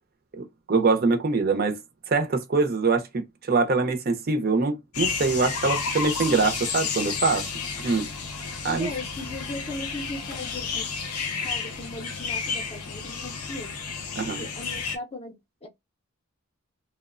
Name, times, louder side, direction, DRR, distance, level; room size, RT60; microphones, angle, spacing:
voice 1, 0.3-1.8 2.1-7.5 7.8-8.1 8.6-8.9 14.2-14.5, right 3 dB, 40° right, 0.5 m, -24 dB
sound 1, 4.9-15.0, left 5 dB, 90° left, 0.6 m, -31 dB
voice 2, 8.8-10.9 11.4-13.7 14.2-15.4 15.6-15.7, left 2 dB, 25° left, 0.5 m, -38 dB
2.9 x 2.0 x 2.4 m
head